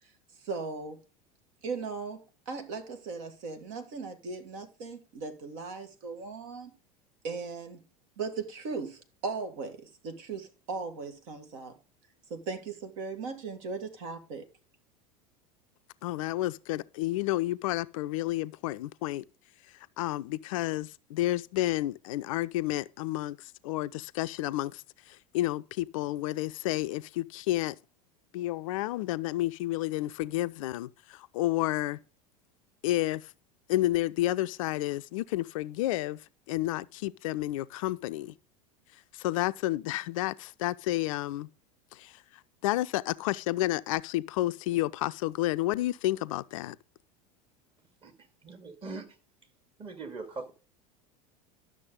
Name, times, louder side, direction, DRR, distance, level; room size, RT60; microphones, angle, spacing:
voice 1, 0.4-1.0 1.6-6.7 7.2-7.8 8.2-11.7 12.3-14.5, right 4 dB, 60° right, 1.9 m, -38 dB
voice 2, 16.0-19.2 20.0-27.8 28.3-32.0 32.8-33.3 33.7-36.2 36.5-38.3 39.1-41.5 41.9-42.1 42.6-46.8, left 16 dB, 60° left, 0.5 m, -30 dB
voice 3, 48.4-49.1 49.8-50.5, right 3 dB, 30° right, 2.2 m, -41 dB
11.5 x 6.5 x 3.7 m
figure-of-eight pair, 80°, 19 cm